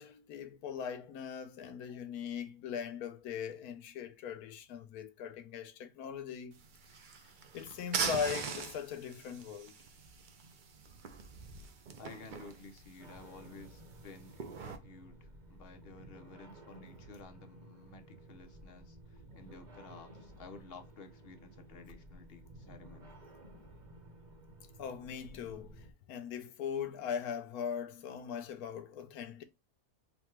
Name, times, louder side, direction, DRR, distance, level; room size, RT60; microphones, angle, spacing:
voice 1, 0.0-6.6 7.5-9.7 24.8-29.4, left 7 dB, 85° left, 1.2 m, -40 dB
sound 1, 6.5-14.8, right 5 dB, 65° right, 0.5 m, -42 dB
voice 2, 12.0-23.2, left 3 dB, 55° left, 0.7 m, -53 dB
sound 2, 13.0-25.9, right 1 dB, 35° right, 0.9 m, -55 dB
4.1 x 2.2 x 4.4 m
omnidirectional pair, 1.6 m